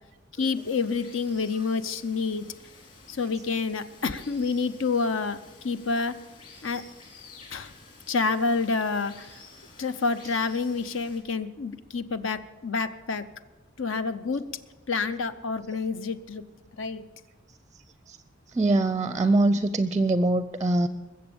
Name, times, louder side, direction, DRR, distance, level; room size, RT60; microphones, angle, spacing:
voice 1, 0.4-2.5 3.1-5.4 5.6-6.1 6.6-6.8 7.5-7.7 8.1-9.4 9.8-13.2 13.8-14.4 14.9-16.4 16.8-17.0, left 4 dB, 70° left, 12 dB, 0.7 m, -28 dB
Water, 0.5-11.2, left 3 dB, 40° left, 3.6 m, -51 dB
voice 2, 18.5-20.9, right 2 dB, 20° right, 12 dB, 0.5 m, -23 dB
21.0 x 7.7 x 7.0 m, 1.1 s
head